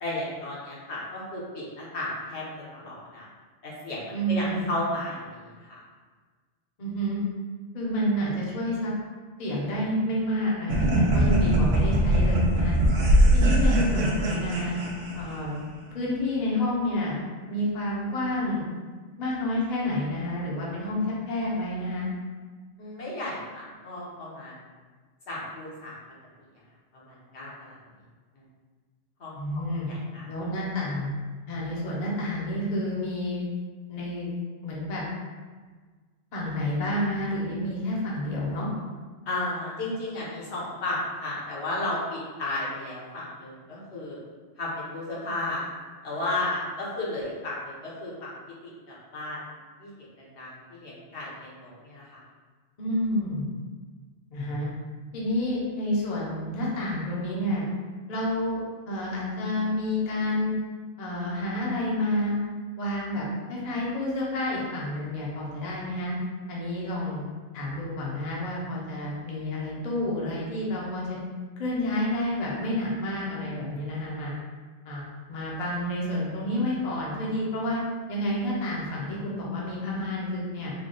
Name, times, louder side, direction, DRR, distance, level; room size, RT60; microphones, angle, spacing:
voice 1, 0.0-2.4 2.7-3.2 3.6-5.8 22.8-24.6 25.3-26.0 26.9-27.8 29.2-29.4 29.8-30.3 39.3-44.2 44.6-45.6 46.0-48.3 48.6-49.4 49.8-52.1, left 2 dB, 65° left, -6 dB, 1.2 m, -34 dB
voice 2, 4.1-4.7 6.8-7.2 7.7-8.9 9.4-12.7 13.3-14.8 15.1-15.5 15.9-17.2 17.5-18.6 19.2-22.1 29.3-29.9 30.3-31.1 31.5-33.4 33.9-34.3 34.6-35.0 36.3-38.7 52.8-53.5 54.3-54.7 55.1-57.6 58.1-58.6 58.9-60.6 61.0-62.4 62.8-66.2 66.5-67.2 67.5-71.2 71.6-74.3 74.8-77.8 78.1-80.7, left 1 dB, 40° left, -5 dB, 0.7 m, -29 dB
sound 1, 10.7-15.5, right 1 dB, 85° right, 1.0 m, -21 dB
3.5 x 2.2 x 3.8 m, 1.4 s
omnidirectional pair, 1.2 m